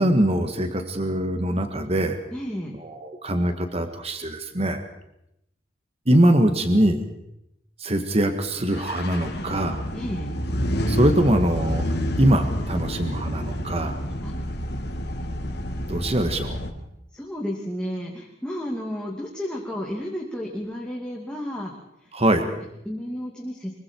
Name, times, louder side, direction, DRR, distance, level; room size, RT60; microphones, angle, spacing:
voice 1, 0.0-2.2 2.8-4.8 6.1-7.0 7.8-9.8 10.9-11.8 12.2-14.0 15.9-16.6 22.1-22.5, right 1 dB, 35° right, 7 dB, 1.6 m, -22 dB
voice 2, 2.3-2.8 9.9-10.3 14.2-14.3 17.1-21.7 22.0-22.1 22.6-23.8, equal, 5° left, -2 dB, 2.6 m, -32 dB
sound 1, 8.7-16.7, equal, 60° left, 2.2 m, -28 dB
24.5 x 23.0 x 4.6 m, 0.83 s
head